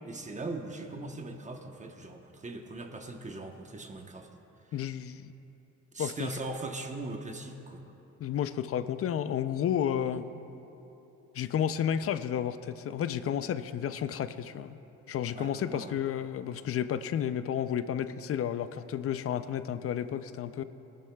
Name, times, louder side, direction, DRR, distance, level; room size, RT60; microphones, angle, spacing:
voice 1, 0.0-4.3 5.9-7.8 10.1-10.2 15.3-15.9, right 2 dB, 25° right, 4 dB, 1.0 m, -40 dB
voice 2, 4.7-5.3 6.0-6.3 8.2-10.2 11.3-14.8 15.1-20.6, left 9 dB, 50° left, 13 dB, 0.5 m, -31 dB
18.5 x 11.0 x 2.3 m, 3.0 s
cardioid pair, 90°, 30 cm